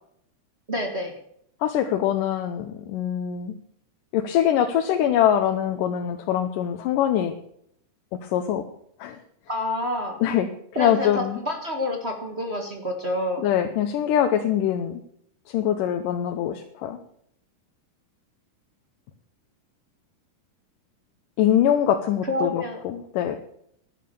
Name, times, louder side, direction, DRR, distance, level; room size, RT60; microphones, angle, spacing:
voice 1, 0.7-1.1 9.5-10.2 10.7-13.4 22.3-22.8, left 1 dB, 40° right, 3 dB, 0.9 m, -28 dB
voice 2, 1.6-3.5 4.1-7.4 8.2-8.6 9.0-9.2 10.2-10.5 10.8-11.4 13.4-15.0 15.5-17.0 21.4-23.4, left 10 dB, 75° left, 6 dB, 2.4 m, -23 dB
11.5 x 10.5 x 6.9 m, 0.70 s
omnidirectional pair, 4.0 m